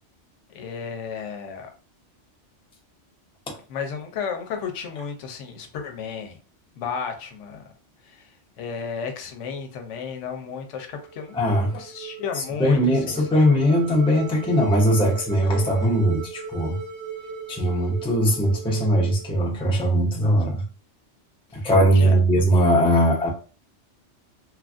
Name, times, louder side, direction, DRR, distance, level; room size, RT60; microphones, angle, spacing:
voice 1, 0.5-1.7 3.7-6.4 6.7-7.6 8.0-8.3 8.6-11.5 11.7-13.4 21.6-21.7 21.9-22.1, left 6 dB, 85° left, 0.9 m, -33 dB
sound 1, 10.8-20.0, right 7 dB, 80° right, 1.2 m, -38 dB
voice 2, 11.3-11.7 12.4-16.8 17.5-20.6 21.5-23.3, equal, 5° left, 0.4 m, -20 dB
3.1 x 2.4 x 2.4 m
omnidirectional pair, 1.2 m